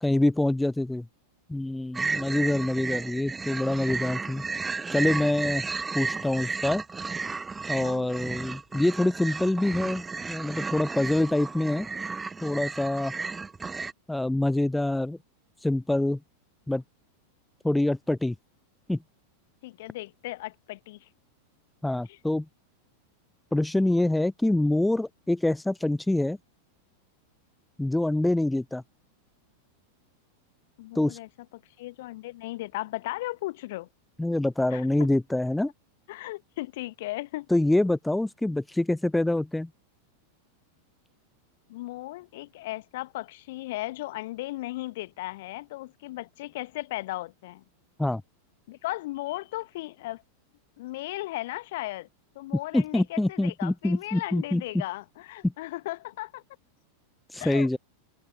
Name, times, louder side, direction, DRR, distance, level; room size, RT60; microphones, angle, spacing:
voice 1, 0.0-1.1 1.5-4.4 4.9-5.6 5.9-6.8 7.7-11.9 12.4-13.1 14.1-15.2 15.6-16.2 16.7-16.8 17.6-18.4 18.9-19.0 21.8-22.5 23.5-26.4 27.8-28.8 31.0-31.2 34.2-35.7 37.5-39.7 48.0-48.2 52.7-54.8 55.4-55.5 57.3-57.8, left 1 dB, 5° left, 0.4 m, -25 dB
sound 1, 1.9-13.9, right 4 dB, 15° right, 0.8 m, -33 dB
voice 2, 7.8-8.2 19.6-21.1 22.1-22.2 30.8-31.3 31.8-33.9 34.7-34.8 36.1-37.5 41.7-47.6 48.7-50.2 50.8-52.1 52.3-56.4 57.4-57.7, left 18 dB, 50° left, 1.3 m, -36 dB
figure-of-eight pair, 90°, 0 cm